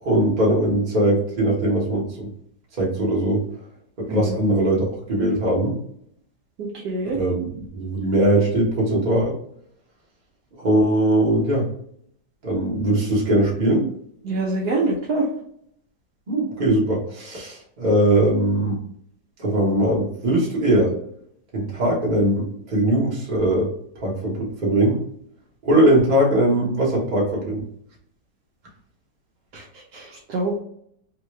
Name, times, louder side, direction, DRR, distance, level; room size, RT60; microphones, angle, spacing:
voice 1, 0.0-2.3 2.8-3.4 4.1-5.8 7.1-9.4 10.6-11.7 12.4-13.9 16.3-18.8 19.4-20.9 21.5-23.7 24.0-25.0 25.6-27.6, right 1 dB, 30° right, -4 dB, 1.0 m, -20 dB
voice 2, 6.6-7.2 14.2-15.3 29.5-29.6 29.9-30.6, right 2 dB, 65° right, -2 dB, 1.2 m, -25 dB
3.3 x 2.8 x 3.1 m, 0.67 s
omnidirectional pair, 2.0 m